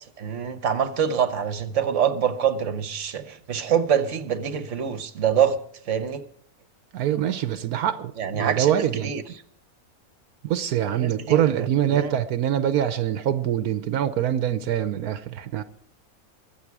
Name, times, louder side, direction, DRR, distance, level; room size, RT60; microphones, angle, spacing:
voice 1, 0.2-5.6 5.9-6.2 8.2-9.2 11.0-12.2, right 8 dB, 55° right, 1.5 m, -25 dB
voice 2, 6.9-9.2 10.4-15.6, right 10 dB, 85° right, 1.3 m, -24 dB
22.5 x 8.3 x 4.8 m
omnidirectional pair, 1.5 m